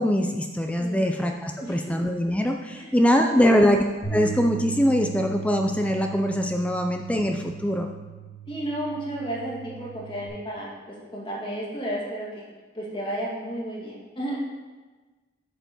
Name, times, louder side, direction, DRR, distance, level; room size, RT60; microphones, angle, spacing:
voice 1, 0.0-3.8 4.1-7.9, equal, 5° left, 4 dB, 0.4 m, -22 dB
voice 2, 0.8-1.2 1.6-1.8 2.8-2.9 3.2-3.6 8.5-12.4 12.7-14.4, right 1 dB, 25° left, -5 dB, 2.2 m, -33 dB
Bass guitar, 4.0-10.3, right 7 dB, 60° left, 2.3 m, -38 dB
9.0 x 4.6 x 5.9 m, 1.3 s
head